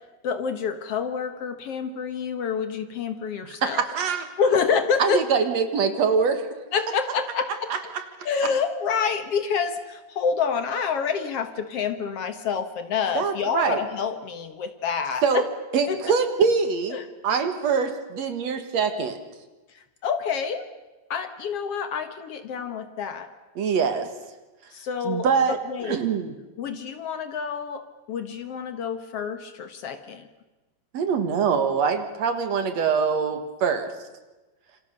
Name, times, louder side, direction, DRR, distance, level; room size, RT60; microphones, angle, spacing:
voice 1, 0.2-3.8 4.4-5.2 6.7-7.7 8.2-15.4 15.9-16.2 16.9-17.0 20.0-20.7 21.1-23.3 24.7-26.0 26.6-30.3, left 6 dB, 65° left, 8 dB, 1.5 m, -27 dB
voice 2, 3.6-4.3 5.0-6.5 7.7-8.0 13.1-13.8 15.2-15.4 15.7-17.0 17.2-19.2 23.6-24.1 25.0-25.6 25.8-26.3 30.9-33.9, right 6 dB, 55° right, 8 dB, 2.3 m, -24 dB
27.5 x 25.0 x 6.7 m, 1.1 s
omnidirectional pair, 4.5 m